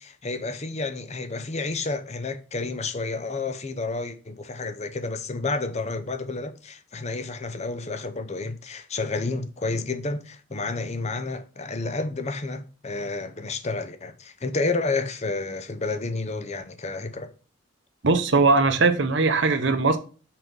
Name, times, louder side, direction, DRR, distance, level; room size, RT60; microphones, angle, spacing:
voice 1, 0.0-17.3, left 3 dB, 35° left, 0.7 m, -30 dB
voice 2, 18.0-20.0, right 3 dB, 60° right, 0.8 m, -20 dB
5.9 x 4.7 x 5.3 m
head